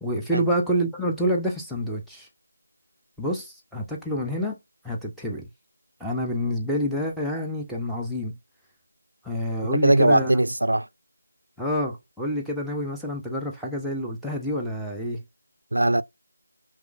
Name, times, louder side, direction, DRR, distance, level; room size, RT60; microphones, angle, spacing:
voice 1, 0.0-2.3 3.2-4.6 4.8-5.5 6.0-8.4 9.2-10.3 11.6-15.2, equal, ahead, 0.5 m, -28 dB
voice 2, 9.8-10.9 15.7-16.0, right 1 dB, 85° right, 0.3 m, -20 dB
4.9 x 3.2 x 2.4 m
figure-of-eight pair, 165°, 0 cm